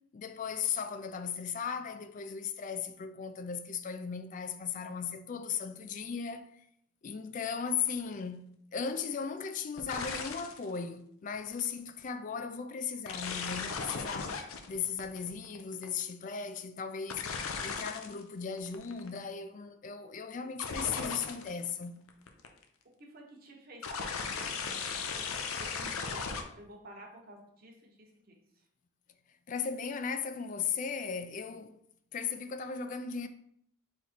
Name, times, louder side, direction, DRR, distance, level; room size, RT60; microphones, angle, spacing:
voice 1, 0.1-6.6 7.0-8.4 8.7-17.2 17.6-21.9 29.5-31.8 32.1-33.3, left 6 dB, 40° left, 0.3 m, -37 dB
sound 1, 7.8-8.0 9.8-10.7 11.3-11.7 13.1-16.0 17.1-18.2 18.6-19.2 20.6-21.7 22.1-22.6 23.8-26.4, left 5 dB, 90° left, 0.6 m, -37 dB
voice 2, 23.0-25.2 25.5-28.4, right 1 dB, 45° right, 0.9 m, -52 dB
4.0 x 3.0 x 4.2 m
head